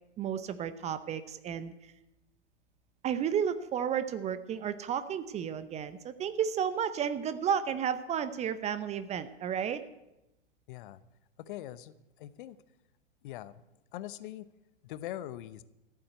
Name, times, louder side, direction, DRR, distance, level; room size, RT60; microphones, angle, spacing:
voice 1, 0.2-1.7 3.0-9.8, right 8 dB, 20° right, 13 dB, 0.7 m, -32 dB
voice 2, 10.7-11.0 11.4-12.6 13.2-13.5 13.9-14.5 14.8-15.6, left 13 dB, 45° left, 16 dB, 0.8 m, -42 dB
14.5 x 7.7 x 9.3 m, 0.95 s
hypercardioid pair, 110°, 36 cm